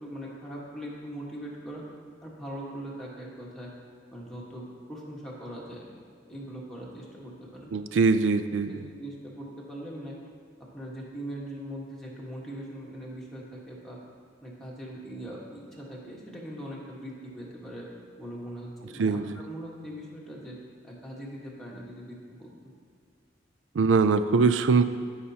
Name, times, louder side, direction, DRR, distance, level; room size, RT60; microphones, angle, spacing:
voice 1, 0.0-1.8 2.2-3.7 4.1-5.9 6.3-7.7 8.7-10.1 10.7-14.0 14.4-17.8 18.2-20.5 20.8-22.7, right 1 dB, ahead, -5 dB, 1.4 m, -41 dB
voice 2, 7.7-8.9 19.0-19.4 23.7-24.8, right 4 dB, 85° right, 11 dB, 0.4 m, -22 dB
13.5 x 5.6 x 2.8 m, 2.1 s
head